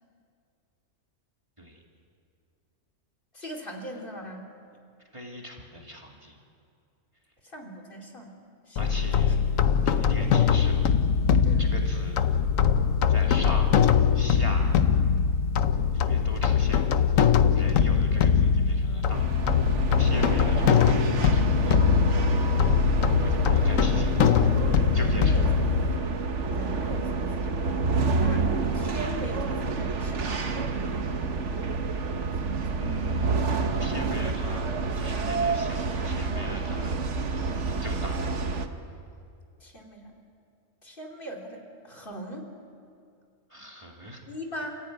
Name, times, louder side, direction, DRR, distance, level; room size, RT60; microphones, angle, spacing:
voice 1, 3.3-4.5 7.4-8.4 8.7-9.3 11.4-11.7 24.9-25.5 26.4-28.5 28.7-30.5 32.4-32.8 39.6-40.1 40.8-42.4 44.3-44.8, right 1 dB, 40° left, 1 dB, 3.0 m, -40 dB
voice 2, 5.1-6.4 8.8-9.4 9.6-10.9 11.6-12.3 13.1-13.8 14.1-15.1 15.9-19.3 20.0-21.9 23.2-24.3 24.9-25.5 32.8-33.5 33.8-34.7 34.9-37.1 37.8-38.2 43.5-44.2, equal, 25° right, 0 dB, 2.6 m, -40 dB
sound 1, 8.8-26.0, left 7 dB, 85° left, 1.2 m, -22 dB
sound 2, 19.1-38.7, right 4 dB, 65° right, 1.5 m, -28 dB
29.0 x 15.0 x 9.5 m, 2.4 s
omnidirectional pair, 1.3 m